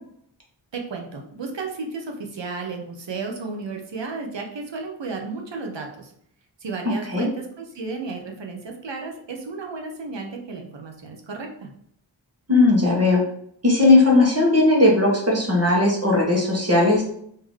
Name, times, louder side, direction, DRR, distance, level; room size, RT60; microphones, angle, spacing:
voice 1, 0.7-6.1 6.6-11.7, right 3 dB, 70° right, 2 dB, 0.8 m, -33 dB
voice 2, 12.5-13.2 13.6-17.0, left 2 dB, 30° right, -2 dB, 1.2 m, -17 dB
3.8 x 2.8 x 3.1 m, 0.67 s
wide cardioid pair, 80°, 46 cm